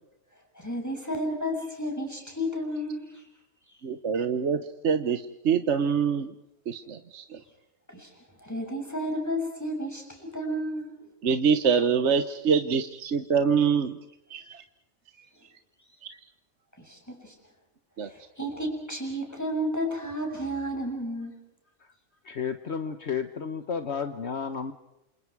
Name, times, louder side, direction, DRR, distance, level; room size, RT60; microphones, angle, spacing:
voice 1, 0.6-3.2 7.9-8.1 8.4-10.9 16.8-17.3 18.1-21.3, equal, 10° left, 2 dB, 7.1 m, -32 dB
voice 2, 3.8-6.3 6.7-7.4 11.2-14.0 14.3-14.6 16.0-16.1 18.0-18.1, right 6 dB, 60° right, 9 dB, 1.3 m, -25 dB
voice 3, 22.2-24.7, left 6 dB, 55° left, 8 dB, 1.4 m, -32 dB
28.5 x 27.5 x 4.8 m, 0.85 s
omnidirectional pair, 1.4 m